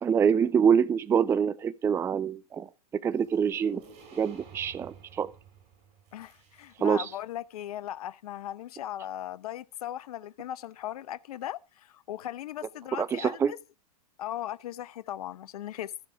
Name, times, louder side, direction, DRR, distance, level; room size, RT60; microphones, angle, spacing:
voice 1, 0.0-2.7 3.0-3.8 4.1-5.3 6.8-7.1 13.0-13.5, right 7 dB, 15° right, 0.5 m, -25 dB
sound 1, 3.1-7.1, right 5 dB, 35° right, 6.0 m, -53 dB
voice 2, 6.1-13.6 14.2-15.9, left 12 dB, 70° left, 0.6 m, -38 dB
14.0 x 7.3 x 4.8 m
hypercardioid pair, 120°, 20 cm